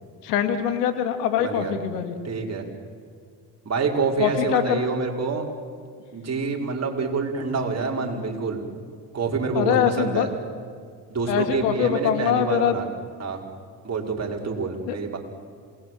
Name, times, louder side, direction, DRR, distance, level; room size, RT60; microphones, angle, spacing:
voice 1, 0.2-2.1 4.2-4.8 9.6-10.3 11.3-12.8 14.9-15.0, left 9 dB, 90° left, 8 dB, 2.3 m, -23 dB
voice 2, 1.4-1.7 2.2-2.6 3.6-5.5 6.1-8.6 9.1-10.3 11.1-12.9 13.2-13.4 13.8-15.2, right 4 dB, 35° right, 0 dB, 5.3 m, -27 dB
27.5 x 20.0 x 7.7 m, 2.1 s
supercardioid pair, 70°, 46 cm